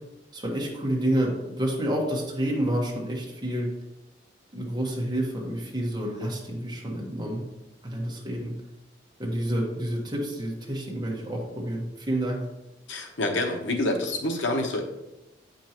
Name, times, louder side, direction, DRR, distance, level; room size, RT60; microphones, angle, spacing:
voice 1, 0.3-3.7 4.5-7.4 7.8-8.5 9.2-12.4, right 1 dB, 20° right, -2 dB, 1.4 m, -29 dB
voice 2, 12.9-14.8, left 2 dB, 85° left, 3 dB, 1.0 m, -27 dB
8.4 x 5.4 x 3.0 m, 0.95 s
head